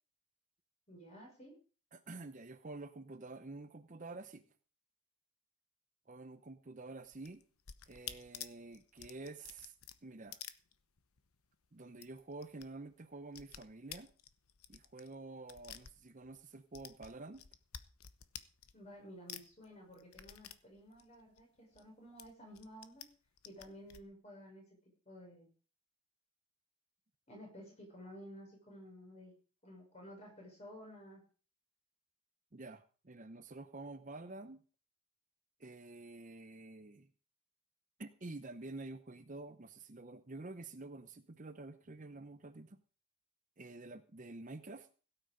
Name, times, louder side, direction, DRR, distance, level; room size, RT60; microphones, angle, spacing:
voice 1, 0.9-1.5 18.7-23.0 23.4-24.6 25.1-25.5 27.3-29.3 29.6-31.2, equal, 30° left, 0 dB, 5.9 m, -53 dB
voice 2, 1.9-4.4 6.1-7.4 7.9-9.7 10.0-10.4 11.7-14.1 14.7-17.4 32.5-34.6 35.6-37.1 38.0-42.8 43.6-44.9, right 2 dB, 35° right, 10 dB, 0.7 m, -49 dB
sound 1, 7.1-11.3 11.5-11.6 11.9-12.7 12.9-16.4 16.7-19.0 19.3-21.9 22.2-23.1 23.4-24.0, left 10 dB, 80° left, 1.0 m, -51 dB
17.0 x 9.0 x 5.1 m, 0.38 s
head